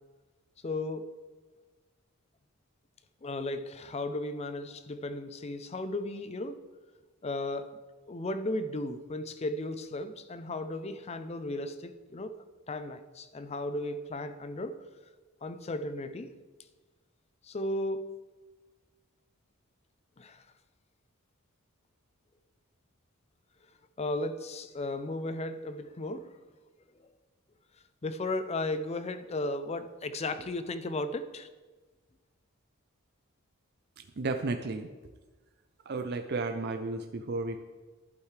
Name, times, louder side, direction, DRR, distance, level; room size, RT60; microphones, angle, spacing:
voice 1, 0.6-1.1 3.2-6.6 7.2-7.7 8.1-14.8 15.4-16.3 17.4-18.1 20.2-20.4 24.0-26.3 27.0-27.1 28.0-31.5, left 2 dB, 30° left, 11 dB, 0.5 m, -35 dB
voice 2, 34.2-34.9 35.9-37.6, right 3 dB, 50° right, 6 dB, 0.5 m, -33 dB
11.5 x 8.2 x 3.3 m, 1.3 s
head